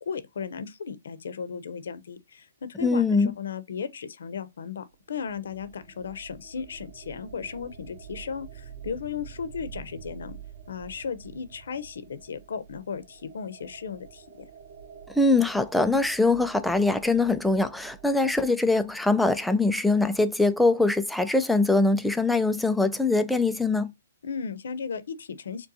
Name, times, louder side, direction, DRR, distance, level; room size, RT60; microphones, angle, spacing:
voice 1, 0.0-10.4 10.7-14.2 24.2-25.7, left 6 dB, 75° left, 0.8 m, -35 dB
voice 2, 2.8-3.3 15.1-23.9, left 3 dB, ahead, 0.4 m, -23 dB
sound 1, 4.9-19.7, right 7 dB, 45° right, 0.7 m, -48 dB
6.7 x 2.2 x 2.7 m
hypercardioid pair, 140°, 0 cm